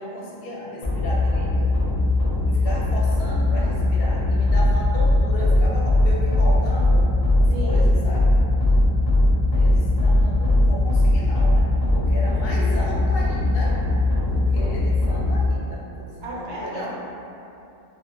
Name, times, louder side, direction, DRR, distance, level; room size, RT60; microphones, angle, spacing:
voice 1, 0.0-1.7 2.5-7.1 7.4-8.2 9.5-13.8 14.3-17.0, left 1 dB, 65° left, -4 dB, 0.7 m, -34 dB
sound 1, 0.8-15.5, left 1 dB, 30° left, 0.5 m, -19 dB
voice 2, 7.5-7.9 16.2-17.0, right 1 dB, 75° right, -4 dB, 0.8 m, -33 dB
2.4 x 2.1 x 2.9 m, 2.7 s
omnidirectional pair, 1.2 m